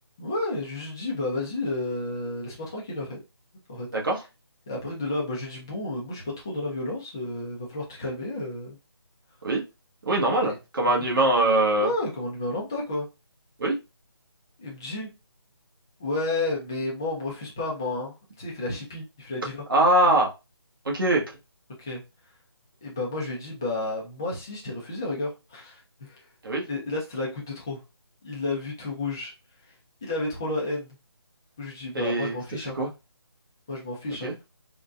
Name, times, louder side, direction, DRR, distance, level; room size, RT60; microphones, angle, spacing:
voice 1, 0.2-3.2 3.7-3.9 4.7-8.8 10.4-10.5 11.7-13.1 14.6-15.1 16.0-19.6 21.8-22.0 22.8-26.2 26.6-27.8 28.2-29.3 30.0-31.0 31.6-32.8 33.7-34.3, left 2 dB, 10° left, 0.3 m, -31 dB
voice 2, 10.1-11.9 13.6-13.7 19.7-20.3 20.8-21.2 26.4-26.6 31.9-32.4 32.7-32.9 34.2-34.3, right 1 dB, 55° right, 1.2 m, -22 dB
3.8 x 2.2 x 2.3 m
figure-of-eight pair, 165°, 14 cm